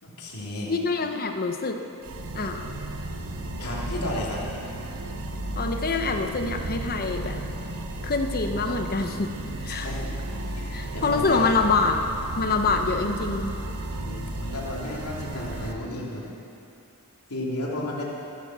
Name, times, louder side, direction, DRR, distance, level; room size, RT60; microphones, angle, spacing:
voice 1, 0.0-0.7 3.6-4.4 9.7-10.2 10.5-11.6 13.9-16.2 17.3-18.0, left 1 dB, 90° left, -4 dB, 3.0 m, -33 dB
voice 2, 0.7-1.8 2.3-2.7 5.5-7.4 8.0-9.9 10.7-12.0 12.4-13.5, left 4 dB, 45° left, 6 dB, 0.9 m, -26 dB
sound 1, 2.0-15.7, right 1 dB, 75° right, 1.1 m, -34 dB
14.0 x 12.0 x 6.1 m, 2.8 s
head